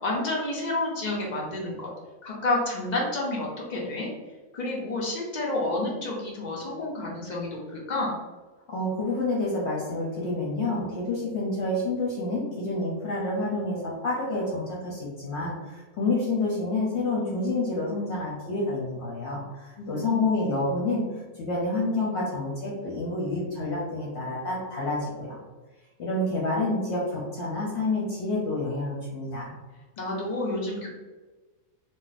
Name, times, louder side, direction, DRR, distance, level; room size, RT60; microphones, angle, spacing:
voice 1, 0.0-1.9 2.2-4.1 4.5-8.1 19.8-20.2 30.0-30.9, left 2 dB, 85° left, -3 dB, 0.4 m, -29 dB
voice 2, 8.7-21.0 21.4-25.4 26.0-29.5, left 2 dB, 60° left, -4 dB, 0.8 m, -28 dB
2.4 x 2.0 x 3.9 m, 1.2 s
omnidirectional pair, 1.5 m